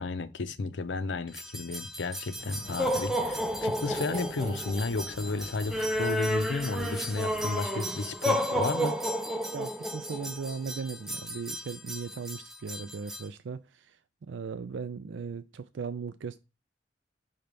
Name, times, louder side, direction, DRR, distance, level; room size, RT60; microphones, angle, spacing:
voice 1, 0.0-9.0, left 3 dB, 90° left, 0.7 m, -33 dB
sound 1, 1.3-13.3, equal, ahead, 0.6 m, -32 dB
sound 2, 2.4-7.5, right 1 dB, 40° right, 3.4 m, -45 dB
voice 2, 9.5-14.0 14.2-16.4, right 5 dB, 90° right, 0.4 m, -38 dB
5.7 x 3.2 x 5.1 m
head